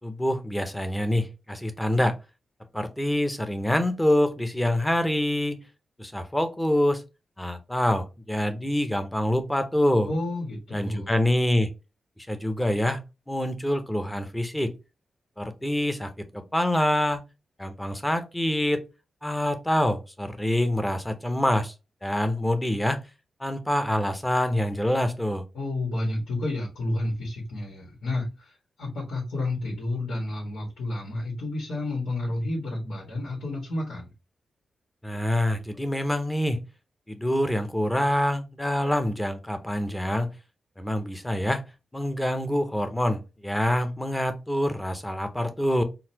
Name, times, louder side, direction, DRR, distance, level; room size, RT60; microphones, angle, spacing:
voice 1, 0.0-2.2 2.7-5.6 6.0-7.0 7.4-10.1 10.7-11.7 12.3-13.0 13.3-14.7 15.4-17.2 17.6-18.8 19.2-21.7 22.0-23.0 23.4-25.4 35.0-36.6 37.1-40.3 40.8-41.6 41.9-45.8, left 1 dB, 10° left, 0.7 m, -26 dB
voice 2, 10.1-11.2 25.5-34.1, left 2 dB, 90° left, 1.6 m, -30 dB
3.9 x 2.5 x 2.8 m
wide cardioid pair, 115°, 0 cm